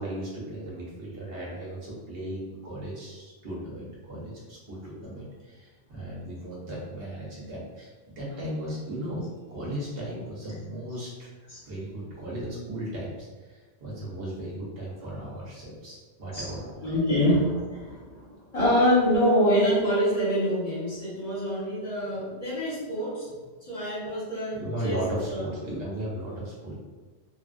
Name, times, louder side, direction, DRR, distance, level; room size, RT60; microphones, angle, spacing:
voice 1, 0.0-9.2 9.5-11.3 11.7-16.7 17.2-17.4 24.5-26.7, right 1 dB, 65° right, -5 dB, 1.1 m, -36 dB
voice 2, 16.3-23.3 23.6-25.0 25.2-25.5, equal, 35° left, -9 dB, 1.0 m, -26 dB
3.0 x 2.3 x 2.5 m, 1.3 s
omnidirectional pair, 1.1 m